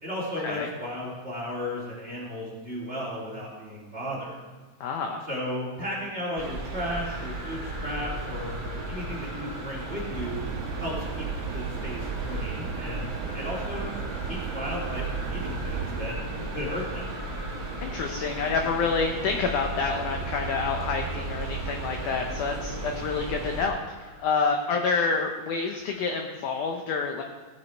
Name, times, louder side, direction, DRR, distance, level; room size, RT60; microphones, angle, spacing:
voice 1, 0.0-4.4 5.3-8.6 8.9-10.4 10.8-11.3 11.5-13.9 14.3-16.2 16.5-17.1, equal, 20° right, -4 dB, 2.3 m, -34 dB
voice 2, 4.8-5.3 17.8-27.2, left 4 dB, 80° left, 3 dB, 1.8 m, -28 dB
sound 1, 6.4-23.7, right 2 dB, 45° right, 1.7 m, -35 dB
sound 2, 6.9-26.3, left 2 dB, 60° left, 3.7 m, -46 dB
sound 3, 10.1-16.0, right 8 dB, 80° right, 2.5 m, -35 dB
16.5 x 7.0 x 4.5 m, 1.4 s
omnidirectional pair, 4.5 m